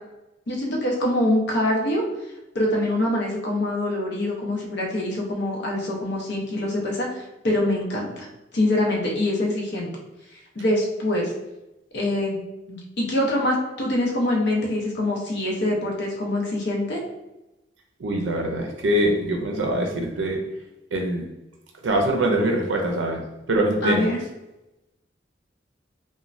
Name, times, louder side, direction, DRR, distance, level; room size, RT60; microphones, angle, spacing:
voice 1, 0.5-2.0 2.5-8.3 8.5-9.9 10.5-11.3 11.9-12.4 12.7-17.0 23.8-24.2, left 1 dB, 65° left, -1 dB, 0.7 m, -24 dB
voice 2, 18.0-20.4 20.9-21.2 21.8-23.2 23.5-24.0, right 1 dB, 80° right, 1 dB, 0.4 m, -23 dB
3.1 x 2.1 x 2.5 m, 0.97 s
head